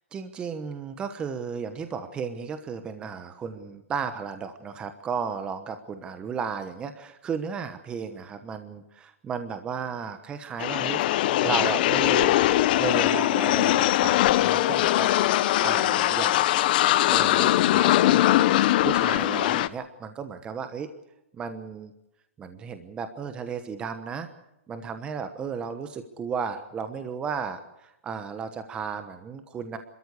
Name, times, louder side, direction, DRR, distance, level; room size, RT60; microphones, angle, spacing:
voice 1, 0.1-11.0 11.4-12.4 12.8-15.1 15.3-16.7 17.1-18.3 18.8-20.9 21.3-21.9 22.4-24.3 24.7-29.8, right 6 dB, 15° right, 9 dB, 1.1 m, -34 dB
sound 1, 10.6-19.7, left 14 dB, 45° left, 0.8 m, -21 dB
28.5 x 13.5 x 8.2 m, 0.87 s
hypercardioid pair, 155°, 7 cm